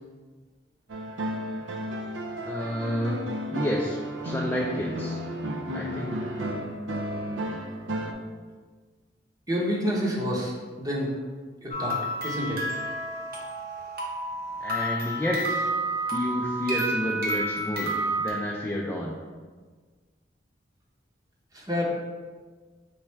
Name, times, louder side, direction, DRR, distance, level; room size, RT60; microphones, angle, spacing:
sound 1, 0.9-8.1, equal, 85° right, 0.5 m, -33 dB
voice 1, 2.4-3.2 3.5-5.2 5.7-6.1 14.6-15.4 16.1-17.9 18.2-19.1, left 1 dB, 10° left, -3 dB, 0.4 m, -30 dB
voice 2, 9.5-10.5 10.8-11.2 11.6-12.0 12.2-12.6 21.5-21.8, equal, 20° right, -2 dB, 0.8 m, -28 dB
sound 2, 11.7-18.3, right 1 dB, 55° right, 1.0 m, -30 dB
3.5 x 3.1 x 4.5 m, 1.5 s
head